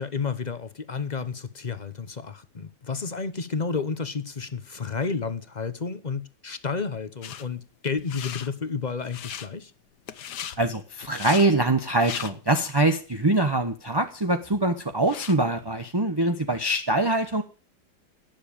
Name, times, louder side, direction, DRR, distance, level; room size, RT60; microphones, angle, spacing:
voice 1, 0.0-9.7, left 5 dB, 30° left, 0.8 m, -31 dB
sound 1, 7.2-7.5 7.9-8.5 9.0-9.5 10.1-10.6 11.0-11.5 11.9-12.6 13.1-13.2 13.9-14.0 14.3-15.4, left 9 dB, 65° left, 1.5 m, -37 dB
voice 2, 10.6-17.4, right 2 dB, 20° right, 0.8 m, -23 dB
18.0 x 7.3 x 8.7 m
omnidirectional pair, 1.9 m